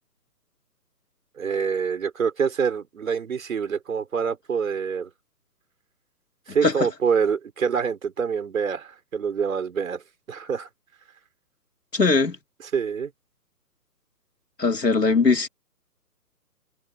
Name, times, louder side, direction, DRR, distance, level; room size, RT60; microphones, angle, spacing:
voice 1, 1.4-5.1 6.5-10.0 10.3-10.7 12.7-13.1, right 6 dB, 55° right, 5.4 m, -26 dB
voice 2, 11.9-12.4 14.6-15.5, left 4 dB, 85° left, 3.5 m, -20 dB
figure-of-eight pair, 140°, 47 cm